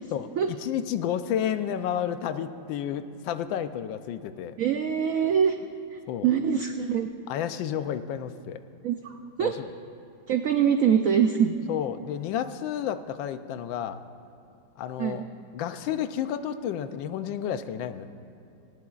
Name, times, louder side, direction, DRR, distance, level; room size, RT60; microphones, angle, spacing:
voice 1, 0.6-4.5 6.1-6.3 7.3-8.6 9.4-9.7 11.7-14.0 14.8-15.3 15.5-18.1, left 9 dB, 85° left, 11 dB, 1.3 m, -31 dB
voice 2, 4.6-5.6 5.9-7.1 8.8-9.5 10.3-11.6 15.0-15.2, right 8 dB, 80° right, 6 dB, 0.7 m, -24 dB
18.5 x 17.5 x 2.4 m, 2.8 s
omnidirectional pair, 2.0 m